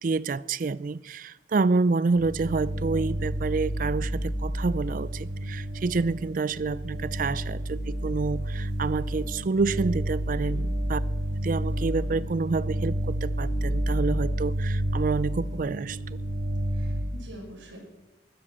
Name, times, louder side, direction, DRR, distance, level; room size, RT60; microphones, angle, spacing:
voice 1, 0.0-11.0 11.4-16.0, right 4 dB, 45° right, 0.4 m, -28 dB
sound 1, 2.1-17.0, right 1 dB, 65° right, 3.8 m, -30 dB
voice 2, 10.5-10.9 16.7-17.8, right 1 dB, 90° right, 6.1 m, -45 dB
13.0 x 12.5 x 7.4 m
head